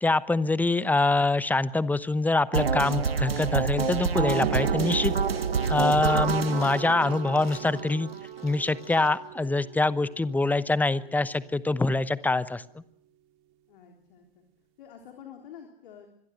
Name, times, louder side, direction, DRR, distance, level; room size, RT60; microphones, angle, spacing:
voice 1, 0.0-5.1 5.7-8.1 8.4-12.6, left 2 dB, 5° left, 17 dB, 0.9 m, -25 dB
sound 1, 2.5-8.5, right 5 dB, 80° right, 1.4 m, -28 dB
sound 2, 4.4-11.5, right 12 dB, 45° right, 2.1 m, -37 dB
sound 3, 4.8-9.2 9.5-9.6, left 4 dB, 80° left, 3.8 m, -52 dB
voice 2, 13.7-14.4 14.8-16.1, left 8 dB, 60° left, 3 dB, 3.8 m, -48 dB
26.5 x 22.0 x 6.5 m, 0.75 s
figure-of-eight pair, 95°, 29 cm